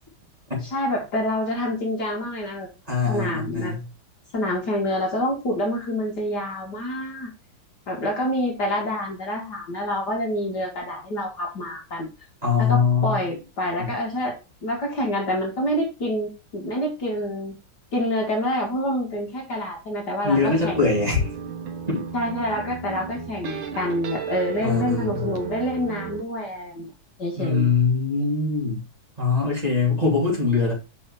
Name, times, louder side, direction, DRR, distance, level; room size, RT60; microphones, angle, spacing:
voice 1, 0.6-2.7 3.1-3.7 4.3-7.3 7.9-12.1 12.6-14.3 14.6-17.5 17.9-20.9 22.1-26.9 27.2-27.7, left 1 dB, 50° left, -1 dB, 2.6 m, -27 dB
voice 2, 2.9-3.8 12.4-13.2 13.8-13.9 20.2-21.3 21.9-22.0 24.6-25.3 27.4-28.8 29.2-30.7, left 4 dB, 20° right, -4 dB, 3.2 m, -22 dB
sound 1, 20.3-26.2, right 7 dB, 75° right, 1.8 m, -34 dB
5.7 x 5.4 x 4.9 m, 0.29 s
omnidirectional pair, 2.3 m